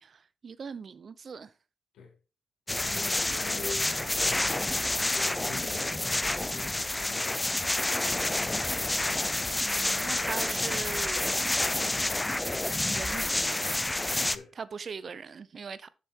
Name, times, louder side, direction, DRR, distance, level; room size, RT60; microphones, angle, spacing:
voice 1, 0.0-1.5 9.6-11.4 12.9-13.6 14.5-15.9, right 5 dB, 55° right, 0.7 m, -40 dB
voice 2, 2.7-5.9 6.4-7.6 14.1-14.5, left 5 dB, 80° left, 2.4 m, -44 dB
sound 1, 2.7-14.4, left 2 dB, 20° left, 0.6 m, -29 dB
6.9 x 6.7 x 4.5 m
supercardioid pair, 50°, 0 cm